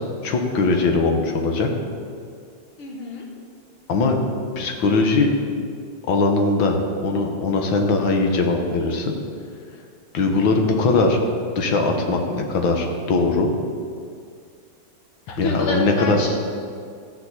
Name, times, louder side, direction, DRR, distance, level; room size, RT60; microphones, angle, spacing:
voice 1, 0.2-1.7 3.9-4.2 4.6-5.3 6.1-9.1 10.1-11.2 11.6-13.5 15.4-16.3, left 3 dB, 70° left, 3 dB, 1.9 m, -20 dB
voice 2, 2.8-3.2 15.3-16.3, left 2 dB, 85° left, -1 dB, 2.2 m, -27 dB
14.0 x 4.9 x 8.3 m, 2.3 s
omnidirectional pair, 2.3 m